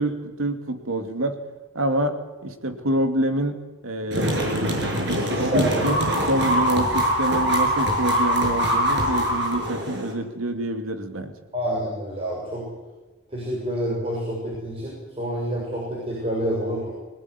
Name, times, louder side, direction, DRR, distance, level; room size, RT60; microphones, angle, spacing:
voice 1, 0.0-1.4 1.7-11.4, right 1 dB, 85° right, 7 dB, 2.6 m, -27 dB
sound 1, 4.1-10.1, equal, 55° right, 7.1 m, -23 dB
voice 2, 5.3-5.8 11.5-12.6 13.3-16.9, equal, 30° right, -3 dB, 6.7 m, -28 dB
26.0 x 18.5 x 9.8 m, 1.2 s
head